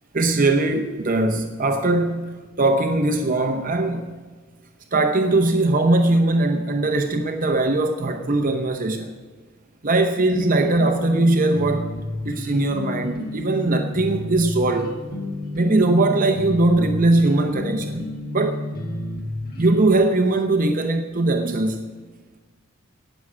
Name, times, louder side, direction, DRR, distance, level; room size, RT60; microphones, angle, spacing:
voice 1, 0.1-4.1 4.9-9.1 9.8-11.9 12.2-14.9 15.5-18.7 19.6-21.8, right 2 dB, 40° right, 0.8 m, -20 dB
sound 1, 10.3-19.9, left 1 dB, 45° left, 1.7 m, -31 dB
18.0 x 6.3 x 8.6 m
head